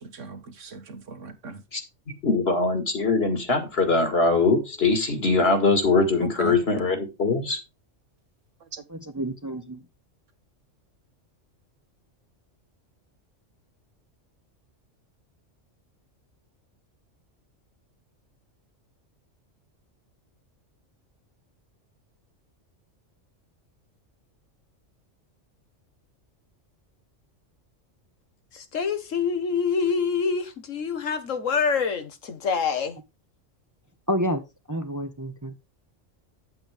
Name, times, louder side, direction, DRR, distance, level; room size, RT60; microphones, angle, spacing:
voice 1, 0.0-1.6 6.2-6.6 8.7-8.8, right 4 dB, 80° right, 1.6 m, -37 dB
voice 2, 2.2-7.6, left 3 dB, 55° left, 2.3 m, -22 dB
voice 3, 8.9-9.8 34.1-34.4 34.7-35.6, equal, 20° right, 0.7 m, -29 dB
voice 4, 28.5-33.0, left 5 dB, 85° left, 1.6 m, -26 dB
8.8 x 7.9 x 3.5 m
omnidirectional pair, 1.3 m